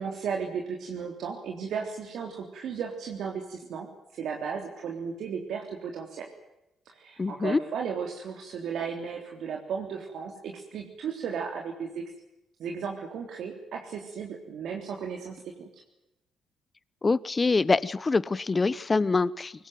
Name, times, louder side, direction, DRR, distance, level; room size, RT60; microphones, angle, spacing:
voice 1, 0.0-3.9 4.1-6.3 6.9-12.0 12.6-15.8, right 6 dB, 70° right, 1 dB, 3.6 m, -35 dB
voice 2, 7.2-7.6 17.0-19.5, left 3 dB, 25° left, 18 dB, 1.0 m, -25 dB
23.5 x 20.0 x 9.4 m, 0.90 s
cardioid pair, 90°, 0 cm